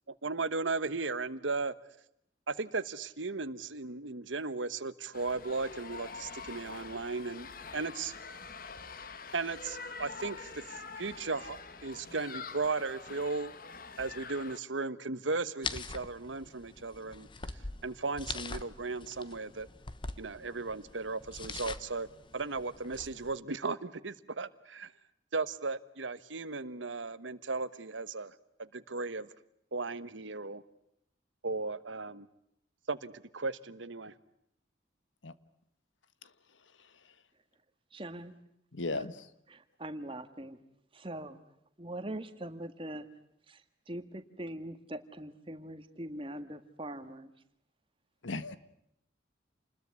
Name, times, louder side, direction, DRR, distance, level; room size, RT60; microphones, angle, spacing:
voice 1, 0.2-1.7 2.5-8.1 9.3-13.5 14.0-17.3 17.8-19.7 20.2-22.1 22.3-24.9 25.3-29.3 29.7-30.6 31.4-32.3 32.9-34.1, right 3 dB, 85° right, 14 dB, 1.3 m, -36 dB
sound 1, 5.1-14.6, left 4 dB, 50° left, 1.5 m, -45 dB
sound 2, 15.6-23.4, left 4 dB, 25° left, 1.1 m, -43 dB
voice 2, 37.9-38.3 38.9-39.1 39.5-40.6 40.9-41.4 41.8-43.1 43.5-43.6 43.9-47.3, right 1 dB, 30° right, 9 dB, 1.8 m, -42 dB
voice 3, 38.7-39.2 48.2-48.6, left 3 dB, 90° left, 14 dB, 1.4 m, -35 dB
29.0 x 21.0 x 9.6 m, 0.76 s
head